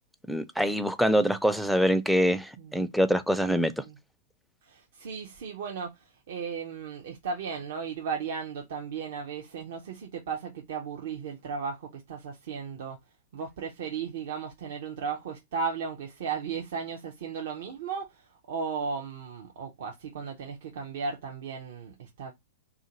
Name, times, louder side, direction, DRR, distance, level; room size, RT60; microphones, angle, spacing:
voice 1, 0.3-3.7, equal, ahead, 0.3 m, -24 dB
voice 2, 2.6-2.9 3.5-4.0 4.6-13.0 13.3-22.3, right 5 dB, 65° right, 0.5 m, -36 dB
2.5 x 2.4 x 2.9 m
hypercardioid pair, 105°, 0 cm